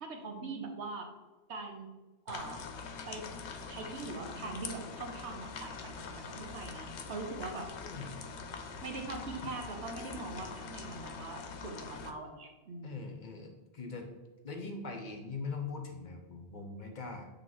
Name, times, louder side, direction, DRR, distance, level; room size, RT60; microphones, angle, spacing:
voice 1, 0.0-1.1 1.5-1.9 2.3-2.6 3.1-3.3 3.7-7.7 8.8-13.1, right 3 dB, 75° right, 3 dB, 1.2 m, -42 dB
sound 1, 2.3-12.1, left 5 dB, 85° left, 0.9 m, -44 dB
voice 2, 7.8-8.2 10.4-10.6 12.8-14.1 14.4-17.2, left 4 dB, 50° left, 4 dB, 0.8 m, -42 dB
7.7 x 3.4 x 3.8 m, 1.2 s
omnidirectional pair, 1.1 m